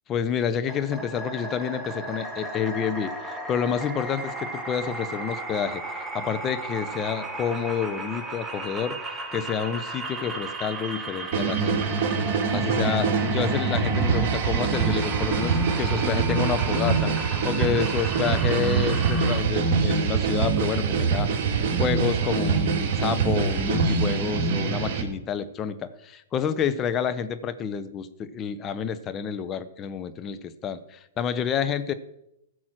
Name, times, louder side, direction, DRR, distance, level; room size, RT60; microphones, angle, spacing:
voice 1, 0.1-5.8 6.1-11.8 12.5-17.1 17.4-31.9, left 7 dB, 25° left, 11 dB, 0.9 m, -29 dB
sound 1, 0.7-19.4, right 2 dB, 10° right, 1.7 m, -35 dB
sound 2, 11.3-25.0, right 5 dB, 45° right, 2.5 m, -24 dB
15.0 x 6.2 x 6.2 m, 0.84 s
hypercardioid pair, 125°, 0 cm